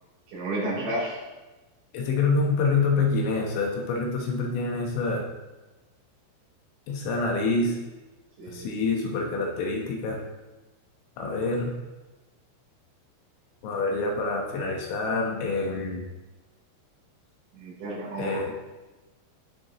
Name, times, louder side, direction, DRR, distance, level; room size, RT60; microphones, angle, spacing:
voice 1, 0.3-1.2 8.4-8.7 17.6-18.4, right 1 dB, 60° right, -6 dB, 5.8 m, -31 dB
voice 2, 1.9-5.3 6.9-7.8 8.4-10.2 11.2-11.7 13.6-16.1 18.2-18.5, left 3 dB, 75° left, 0 dB, 3.4 m, -26 dB
17.0 x 6.9 x 3.0 m, 1.1 s
omnidirectional pair, 5.9 m